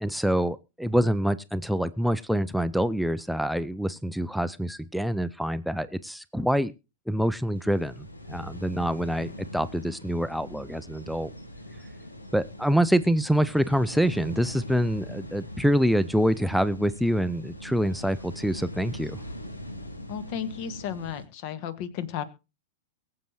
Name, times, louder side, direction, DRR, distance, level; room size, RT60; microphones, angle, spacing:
voice 1, 0.0-6.7 7.1-11.3 12.3-19.2, equal, ahead, 0.5 m, -26 dB
sound 1, 7.5-21.2, left 1 dB, 85° left, 1.9 m, -42 dB
voice 2, 20.1-22.2, left 9 dB, 45° left, 1.5 m, -34 dB
23.0 x 7.7 x 3.1 m
figure-of-eight pair, 95°, 0 cm